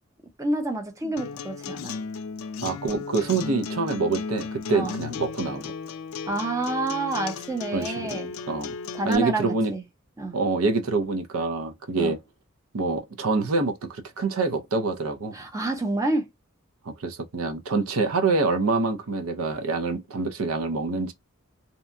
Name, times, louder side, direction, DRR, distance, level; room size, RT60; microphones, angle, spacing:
voice 1, 0.4-1.9 4.7-4.9 6.3-8.3 8.9-9.8 10.2-10.4 12.0-12.1 15.3-16.3, right 2 dB, 15° right, 0.6 m, -28 dB
Acoustic guitar, 1.2-9.2, left 5 dB, 70° left, 0.3 m, -35 dB
voice 2, 2.6-5.7 7.7-8.2 8.5-8.7 9.1-9.7 10.3-12.2 12.7-15.4 16.8-21.1, right 3 dB, 80° right, 0.6 m, -26 dB
2.8 x 2.2 x 2.5 m
head